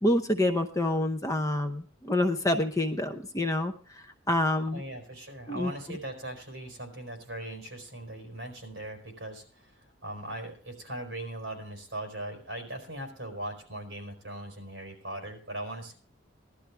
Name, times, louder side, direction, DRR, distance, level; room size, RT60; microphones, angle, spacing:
voice 1, 0.0-4.8 5.5-5.7, left 1 dB, 15° left, 6 dB, 0.7 m, -27 dB
voice 2, 4.7-15.9, right 1 dB, 55° right, 3 dB, 4.2 m, -40 dB
17.0 x 12.0 x 3.4 m, 0.43 s
head